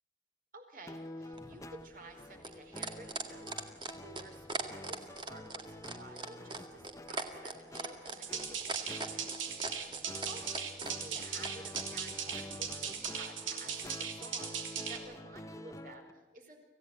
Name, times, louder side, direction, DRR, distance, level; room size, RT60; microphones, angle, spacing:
voice 1, 0.5-9.1 9.8-9.9 10.3-16.6, right 2 dB, 45° right, 4 dB, 4.6 m, -53 dB
sound 1, 0.9-16.1, left 1 dB, 15° left, 1.0 m, -48 dB
sound 2, 1.3-11.9 13.0-13.1, right 3 dB, 25° right, 2.0 m, -40 dB
sound 3, 8.1-15.0, right 7 dB, 90° right, 3.2 m, -39 dB
26.0 x 16.5 x 9.1 m, 1.2 s
head